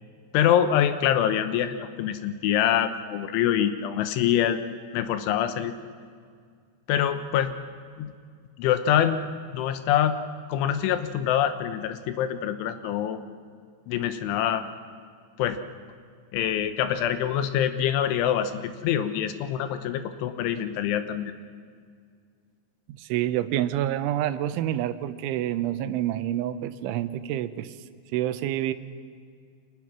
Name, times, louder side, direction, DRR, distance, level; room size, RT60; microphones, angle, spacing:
voice 1, 0.3-4.6 4.9-5.7 6.9-7.5 8.0-8.1 8.6-9.2 9.5-10.2 10.5-13.2 13.9-14.6 15.4-15.6 16.3-21.3, left 10 dB, 85° left, 10 dB, 3.5 m, -25 dB
voice 2, 23.0-27.8 28.1-28.7, right 12 dB, 85° right, 12 dB, 3.3 m, -27 dB
29.5 x 24.5 x 6.1 m, 2.1 s
omnidirectional pair, 5.4 m